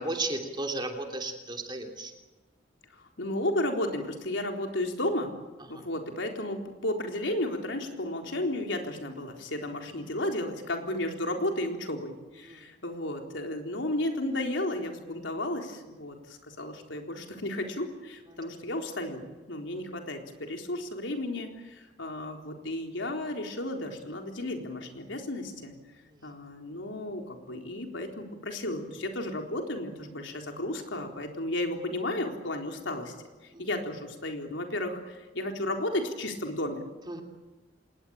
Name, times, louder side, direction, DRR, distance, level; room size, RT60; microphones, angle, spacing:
voice 1, 0.0-2.1 12.5-12.6 33.5-33.6 37.1-37.2, right 2 dB, 25° right, 3 dB, 3.1 m, -34 dB
voice 2, 2.9-5.4 5.7-25.7 26.2-33.1 33.6-36.8, left 1 dB, 80° left, 3 dB, 3.9 m, -33 dB
26.5 x 20.0 x 8.9 m, 1.2 s
head